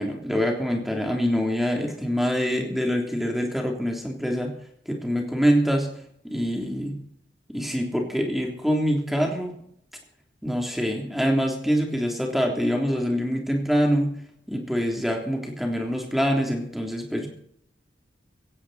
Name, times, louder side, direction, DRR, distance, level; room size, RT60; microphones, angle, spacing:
voice 1, 0.0-4.5 4.8-5.9 6.2-7.0 7.5-9.6 10.4-14.2 14.5-17.3, equal, ahead, 1 dB, 3.3 m, -25 dB
17.0 x 16.0 x 4.3 m, 0.67 s
head